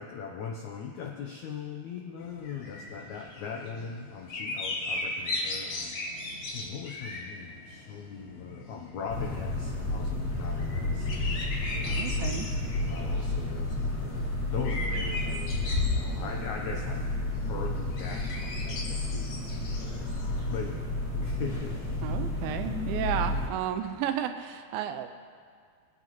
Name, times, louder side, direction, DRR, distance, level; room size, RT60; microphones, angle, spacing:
voice 1, 0.0-11.1 11.7-12.3 12.9-17.0 17.5-19.3 19.8-20.1 20.5-20.9 21.2-22.0, left 6 dB, 80° left, 1 dB, 1.6 m, -40 dB
sound 1, 2.2-20.8, left 2 dB, 60° left, 2.9 m, -38 dB
sound 2, 9.1-23.5, left 2 dB, 35° left, 1.7 m, -31 dB
voice 2, 11.9-12.5 22.0-25.1, right 9 dB, 85° right, 8 dB, 2.3 m, -32 dB
24.0 x 9.0 x 3.1 m, 2.1 s
omnidirectional pair, 4.4 m